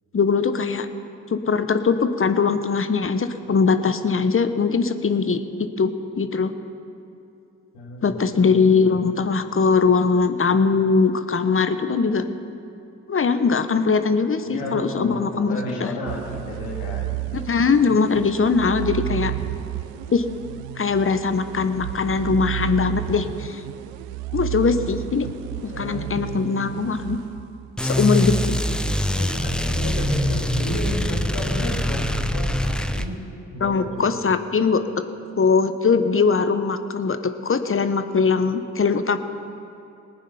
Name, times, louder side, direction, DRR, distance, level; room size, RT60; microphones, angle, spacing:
voice 1, 0.1-0.9 1.3-6.5 8.0-12.2 13.1-15.9 17.3-19.3 20.1-20.2 20.8-23.6 24.3-25.3 25.6-27.2 27.8-28.5 33.6-35.0 35.4-39.2, left 5 dB, 40° left, 10 dB, 1.1 m, -21 dB
voice 2, 7.7-8.6 14.4-17.2 25.7-26.4 29.1-33.2 33.5-34.1, left 1 dB, 75° left, -3 dB, 3.2 m, -32 dB
sound 1, 16.1-27.9, right 17 dB, 80° right, 0.6 m, -32 dB
sound 2, 27.8-33.1, left 1 dB, ahead, 0.9 m, -23 dB
19.5 x 9.1 x 5.6 m, 2.8 s
hypercardioid pair, 40°, 35 cm